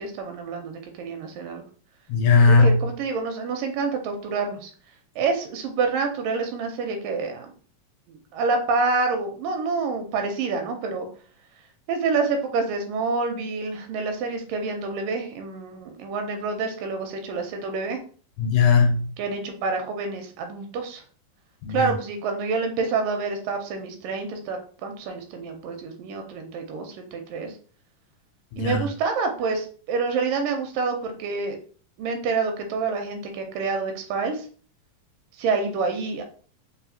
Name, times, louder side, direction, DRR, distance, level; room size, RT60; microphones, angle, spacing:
voice 1, 0.0-1.6 2.4-4.7 5.2-7.5 8.1-11.1 11.9-18.0 19.2-21.0 21.7-27.5 28.6-31.6 32.0-34.5 35.4-36.2, right 4 dB, 80° right, 4 dB, 2.2 m, -27 dB
voice 2, 2.1-2.8 18.4-19.1 21.6-21.9 28.5-28.9, left 4 dB, 75° left, 3 dB, 2.1 m, -18 dB
5.6 x 2.3 x 2.7 m, 0.42 s
omnidirectional pair, 4.0 m